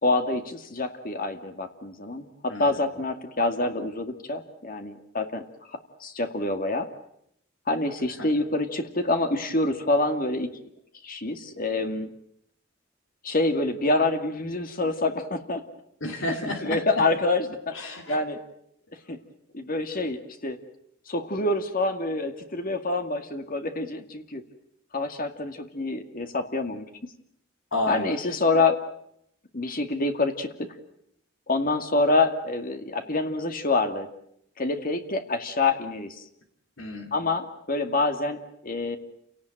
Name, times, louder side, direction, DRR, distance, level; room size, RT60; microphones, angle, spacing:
voice 1, 0.0-5.4 6.0-6.9 7.7-10.5 11.0-12.1 13.2-15.6 16.6-17.7 18.1-18.4 19.1-19.2 19.5-20.6 21.1-24.4 24.9-26.9 27.9-28.8 29.5-30.7 31.5-34.1 34.6-36.2 37.1-39.0, left 2 dB, 45° left, 7 dB, 2.2 m, -26 dB
voice 2, 2.5-2.9 8.0-8.3 16.0-17.0 17.7-18.2 27.7-28.4 36.8-37.3, left 1 dB, 75° left, 4 dB, 3.0 m, -32 dB
29.5 x 18.0 x 9.2 m, 0.74 s
head